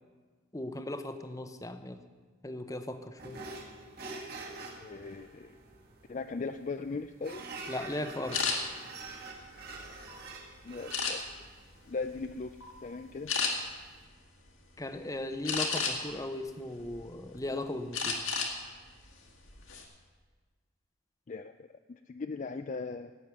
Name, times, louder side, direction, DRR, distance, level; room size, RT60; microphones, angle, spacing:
voice 1, 0.5-2.0 2.4-3.4 7.7-8.5 14.8-18.2, left 1 dB, 15° left, 9 dB, 0.8 m, -37 dB
sound 1, 3.2-14.0, right 3 dB, 45° right, 1.9 m, -47 dB
voice 2, 4.8-5.6 6.1-7.4 10.6-11.3 11.9-12.6 12.8-13.3 21.3-23.1, left 4 dB, 35° left, 8 dB, 0.4 m, -38 dB
sound 2, 8.3-8.6 9.2-10.2 10.9-11.5 12.0-12.3 12.6-12.8 13.3-13.5 15.5-16.2 16.7-17.4 17.9-18.5 18.9-19.1 19.5-19.8, left 5 dB, 75° left, 2.2 m, -32 dB
16.5 x 9.2 x 6.9 m, 1.4 s
head